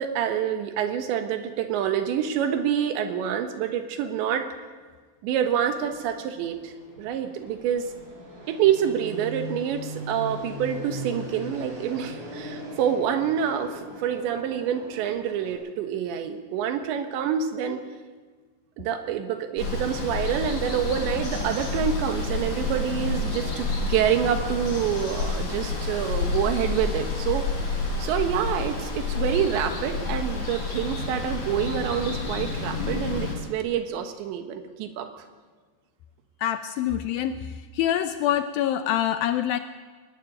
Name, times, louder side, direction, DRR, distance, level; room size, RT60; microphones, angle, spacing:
voice 1, 0.0-4.5 5.2-6.7 7.0-7.9 8.5-17.8 18.8-27.5 28.0-35.3, right 9 dB, 85° right, 7 dB, 3.6 m, -27 dB
Fixed-wing aircraft airplane, 5.3-15.5, equal, 45° right, 6.8 m, -40 dB
Water, 19.6-33.4, left 3 dB, 45° left, 6.4 m, -29 dB
voice 2, 36.4-39.6, left 11 dB, 80° left, 9 dB, 2.1 m, -26 dB
22.5 x 12.0 x 9.9 m, 1.4 s
omnidirectional pair, 5.0 m